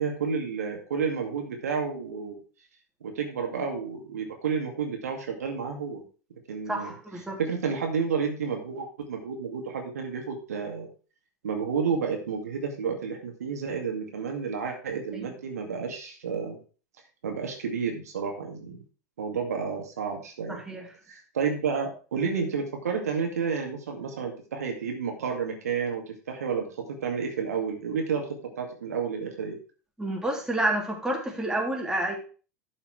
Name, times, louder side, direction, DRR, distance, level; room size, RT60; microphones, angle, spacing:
voice 1, 0.0-2.4 3.0-6.0 6.5-6.9 7.4-10.9 11.4-16.6 17.2-18.8 19.2-20.6 21.1-28.2 28.6-29.6, right 6 dB, 70° right, 2 dB, 2.2 m, -31 dB
voice 2, 6.7-7.4 15.1-15.3 20.5-20.9 30.0-32.2, right 1 dB, 5° right, 0 dB, 3.2 m, -29 dB
11.5 x 5.7 x 4.8 m, 0.38 s
figure-of-eight pair, 80°, 9 cm